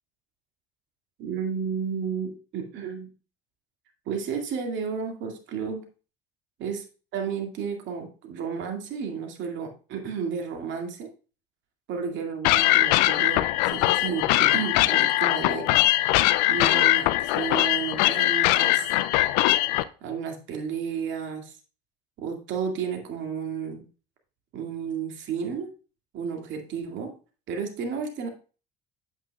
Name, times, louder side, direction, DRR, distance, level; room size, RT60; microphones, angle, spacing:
voice 1, 1.2-3.1 4.1-5.8 6.6-6.8 7.1-11.1 11.9-16.1 16.5-18.8 20.0-21.6 22.2-23.8 24.5-25.7 26.1-27.1 27.5-28.3, right 6 dB, 65° right, 4 dB, 2.1 m, -32 dB
sound 1, 12.4-19.8, left 17 dB, 80° left, 0.5 m, -21 dB
8.4 x 8.3 x 2.3 m, 0.35 s
supercardioid pair, 80°, 21 cm